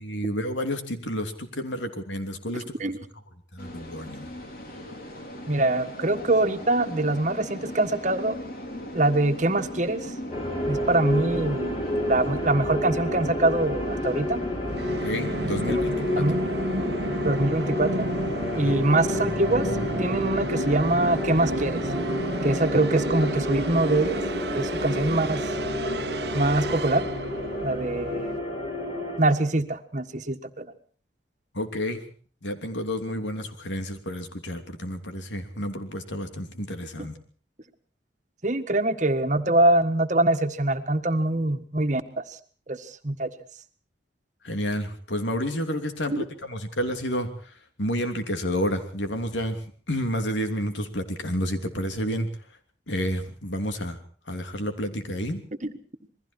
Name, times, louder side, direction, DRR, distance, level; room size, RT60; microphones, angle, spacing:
voice 1, 0.0-2.6 3.5-4.3 15.0-16.3 18.5-18.7 31.5-32.0 32.4-37.1 44.4-52.3 52.9-54.0 54.3-55.4, equal, 85° left, 7 dB, 3.1 m, -30 dB
sound 1, 3.6-23.1, left 1 dB, 50° left, 4.5 m, -39 dB
voice 2, 5.5-8.4 8.9-10.1 10.7-14.4 15.7-15.8 16.2-16.5 17.2-18.1 18.5-19.7 20.0-21.8 22.4-24.2 24.5-25.5 26.3-27.1 27.6-28.5 29.2-30.7 37.0-37.1 38.4-42.4 42.7-43.3 46.1-46.2 55.6-55.7, right 2 dB, 40° right, 8 dB, 1.6 m, -24 dB
sound 2, 10.3-29.2, left 1 dB, 35° left, 5.9 m, -30 dB
Musical instrument, 14.7-28.4, right 2 dB, 60° right, 1.2 m, -32 dB
28.0 x 21.0 x 4.5 m, 0.43 s
head